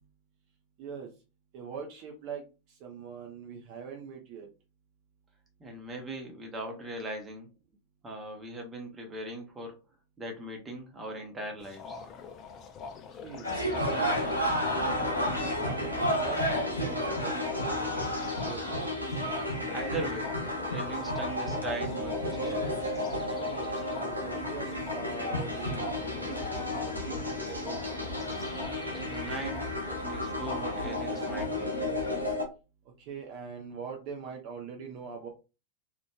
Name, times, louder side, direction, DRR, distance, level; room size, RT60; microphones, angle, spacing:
voice 1, 0.8-1.1 1.5-2.4 2.8-4.5 13.2-14.3 14.6-18.6 23.5-23.7 23.9-28.0 33.0-35.3, right 6 dB, 45° right, 1 dB, 0.6 m, -42 dB
voice 2, 5.6-7.5 8.0-9.7 10.2-12.0 19.7-20.3 20.7-22.7 29.1-29.7 30.0-31.7, right 1 dB, 15° right, 2 dB, 0.9 m, -39 dB
sound 1, 11.6-31.5, left 6 dB, 35° left, 0.4 m, -44 dB
sound 2, 13.4-32.3, equal, 85° left, 0.8 m, -35 dB
sound 3, 13.8-32.4, left 1 dB, 80° right, 0.7 m, -35 dB
3.0 x 2.4 x 2.2 m, 0.30 s
figure-of-eight pair, 90°, 0 cm